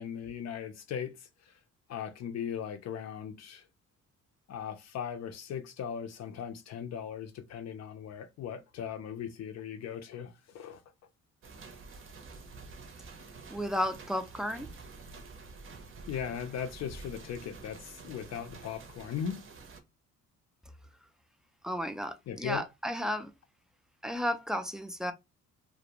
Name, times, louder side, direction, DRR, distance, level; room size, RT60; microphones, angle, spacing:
voice 1, 0.0-1.6 1.9-3.7 4.5-10.8 16.1-19.4 22.3-22.6, left 8 dB, 60° left, 0.5 m, -38 dB
sound 1, 11.4-19.8, right 4 dB, 45° right, 0.6 m, -48 dB
voice 2, 13.5-14.7 21.6-23.3 24.0-25.1, equal, ahead, 0.3 m, -33 dB
2.4 x 2.1 x 2.8 m
cardioid pair, 90°, 30 cm